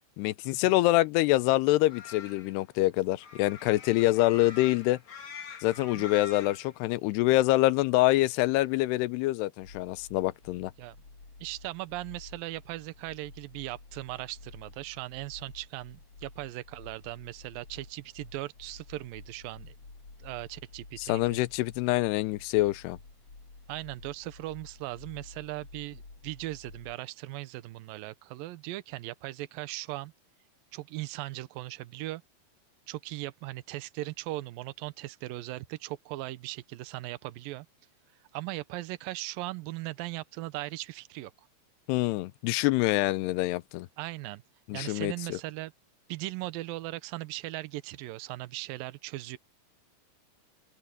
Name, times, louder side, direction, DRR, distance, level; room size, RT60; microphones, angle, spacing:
voice 1, 0.2-5.0 5.6-10.7 21.0-23.0 41.9-43.9 44.7-45.4, left 18 dB, 80° left, 2.7 m, -26 dB
sound 1, 1.7-6.8, left 6 dB, 50° left, 4.8 m, -45 dB
sound 2, 9.6-26.9, left 3 dB, 35° left, 8.1 m, -51 dB
voice 2, 11.4-19.7 20.2-21.4 23.7-30.1 30.7-32.2 32.9-37.7 38.3-41.3 44.0-44.4 44.7-45.7 46.1-49.4, right 18 dB, 75° right, 2.1 m, -38 dB
omnidirectional pair, 5.1 m